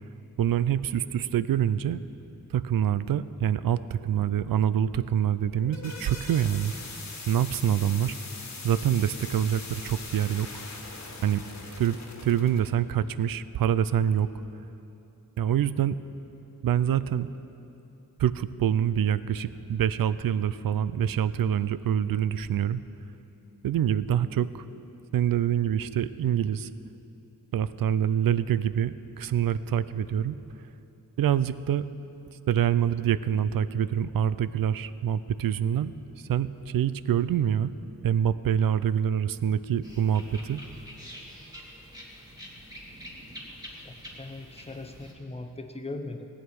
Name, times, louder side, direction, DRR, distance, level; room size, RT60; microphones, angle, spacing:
voice 1, 0.4-2.0 2.5-6.7 7.3-8.2 8.6-10.5 11.2-11.4 11.8-12.0 12.2-14.3 15.4-16.0 16.6-17.3 18.2-22.8 23.6-24.7 25.1-26.7 27.5-30.4 31.2-31.9 32.5-37.7 38.0-40.6, right 9 dB, 75° right, 15 dB, 0.5 m, -26 dB
sound 1, 5.4-12.7, left 3 dB, 50° left, 1.5 m, -41 dB
sound 2, 39.8-45.1, equal, 10° right, 2.1 m, -45 dB
voice 2, 43.8-46.3, left 2 dB, 15° left, 6 dB, 0.7 m, -39 dB
18.0 x 8.8 x 4.7 m, 2.9 s
wide cardioid pair, 125°, 35 cm